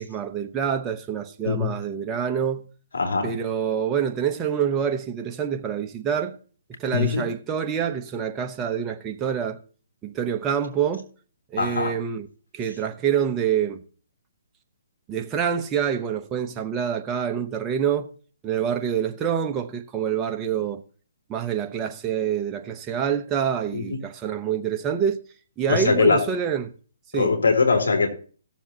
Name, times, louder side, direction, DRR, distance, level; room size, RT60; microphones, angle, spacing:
voice 1, 0.0-2.7 3.2-6.3 6.7-9.6 10.0-11.1 11.5-12.3 12.5-13.8 15.1-18.1 18.4-20.8 21.3-25.2 25.6-26.7 27.1-27.3, right 8 dB, 20° right, 0.9 m, -26 dB
voice 2, 2.9-3.3 6.9-7.2 11.6-11.9 23.7-23.8 25.7-26.2 27.1-28.1, left 4 dB, 80° left, 2.9 m, -21 dB
17.0 x 7.2 x 2.8 m
hypercardioid pair, 145°, 0 cm